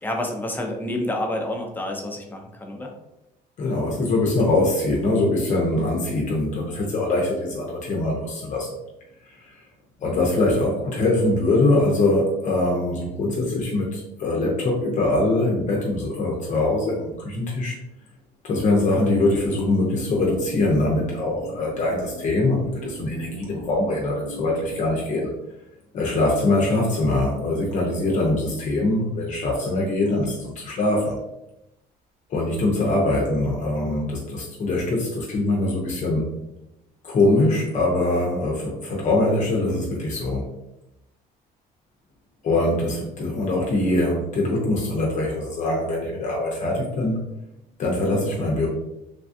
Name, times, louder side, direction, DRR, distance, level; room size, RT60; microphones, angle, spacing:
voice 1, 0.0-2.9, left 1 dB, 10° left, 1 dB, 0.6 m, -28 dB
voice 2, 3.6-8.7 9.2-9.6 10.0-17.8 18.4-25.3 25.9-31.2 32.3-36.3 37.0-40.5 42.4-47.2 47.8-48.7, left 2 dB, 45° left, -2 dB, 0.7 m, -23 dB
sound 1, 19.5-24.9, right 1 dB, 85° right, 0.8 m, -40 dB
3.2 x 2.3 x 2.6 m, 0.88 s
cardioid pair, 110°, 17 cm